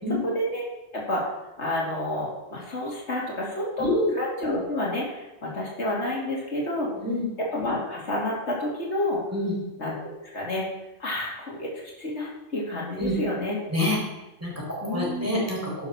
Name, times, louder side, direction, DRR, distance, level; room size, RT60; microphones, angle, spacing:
voice 1, 0.2-0.7 0.9-1.3 1.6-3.9 4.1-6.9 7.5-9.2 9.8-10.7 11.0-11.7 12.0-13.6 14.8-15.4, left 1 dB, 80° left, -3 dB, 2.9 m, -29 dB
voice 2, 3.8-4.1 6.9-7.3 9.3-9.6 13.0-13.1 13.7-14.0 14.4-15.9, left 1 dB, 15° right, -5 dB, 4.2 m, -27 dB
11.5 x 6.8 x 5.9 m, 0.95 s
omnidirectional pair, 1.2 m